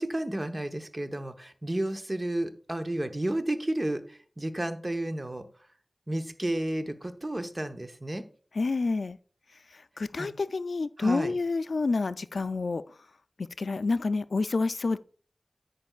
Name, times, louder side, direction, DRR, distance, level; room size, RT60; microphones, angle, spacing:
voice 1, 0.0-5.5 6.1-8.2 10.2-10.3 11.0-11.3, right 1 dB, 35° right, 0.9 m, -32 dB
voice 2, 8.6-9.2 10.0-12.8 13.4-15.0, left 3 dB, 85° left, 0.3 m, -28 dB
13.5 x 5.2 x 2.4 m
wide cardioid pair, 45°, 0 cm